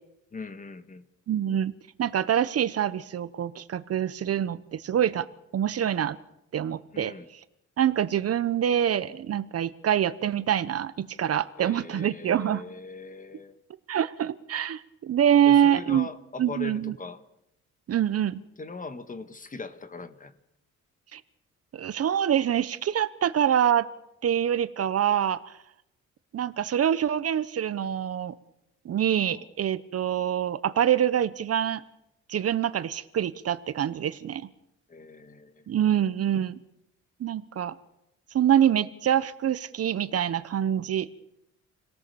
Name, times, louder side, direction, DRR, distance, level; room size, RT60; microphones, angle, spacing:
voice 1, 0.3-1.1 6.9-7.3 11.6-13.6 15.5-17.2 18.6-20.3 29.3-29.5 34.9-35.6, left 4 dB, 25° left, 11 dB, 1.8 m, -40 dB
voice 2, 1.3-6.2 6.5-7.1 7.8-12.6 13.9-16.1 16.4-16.9 17.9-18.4 21.1-21.2 21.7-23.9 24.2-25.6 26.3-28.4 28.8-31.8 32.3-34.5 35.7-36.6 37.2-37.8 38.3-41.1, right 9 dB, 55° right, 15 dB, 1.0 m, -25 dB
28.5 x 18.0 x 7.0 m, 0.84 s
cardioid pair, 115°, 30 cm